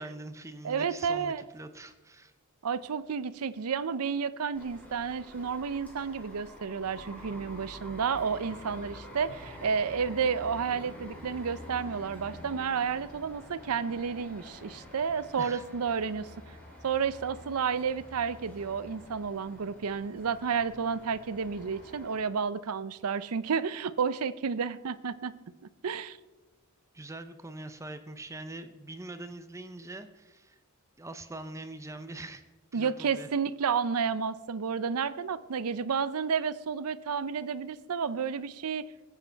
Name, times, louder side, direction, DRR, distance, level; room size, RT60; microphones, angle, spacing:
voice 1, 0.0-2.3 15.4-15.6 26.9-30.6 31.0-32.4 32.7-33.3, right 2 dB, 15° right, 9 dB, 0.6 m, -43 dB
voice 2, 0.6-1.4 2.6-16.3 16.8-25.3 25.8-26.2 32.7-38.9, right 6 dB, 80° right, 15 dB, 0.5 m, -31 dB
sound 1, 4.5-22.2, left 1 dB, 5° left, 3.4 m, -48 dB
sound 2, 9.2-11.4, equal, 30° left, 4.6 m, -54 dB
20.0 x 8.3 x 4.5 m, 1.2 s
head